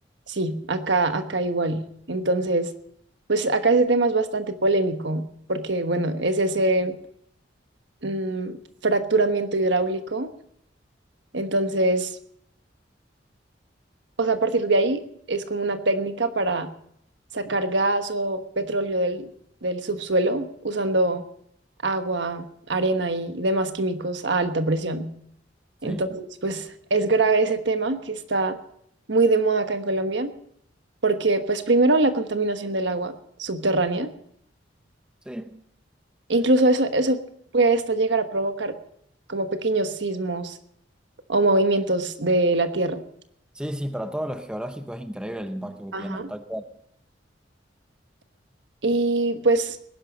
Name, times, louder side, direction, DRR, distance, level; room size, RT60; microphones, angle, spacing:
voice 1, 0.3-1.8 2.1-2.7 3.3-7.0 8.0-8.6 8.8-10.3 11.3-12.1 14.2-15.0 15.3-16.7 17.3-19.3 19.6-21.2 21.8-25.1 25.8-28.6 29.1-30.3 31.0-33.1 33.4-34.1 36.3-37.2 37.5-38.7 39.3-40.6 41.3-43.0 45.9-46.3 48.8-49.8, right 2 dB, 70° right, 1.3 m, -23 dB
voice 2, 35.2-35.6 43.5-46.6, equal, 5° right, 0.8 m, -33 dB
19.0 x 11.0 x 5.2 m
head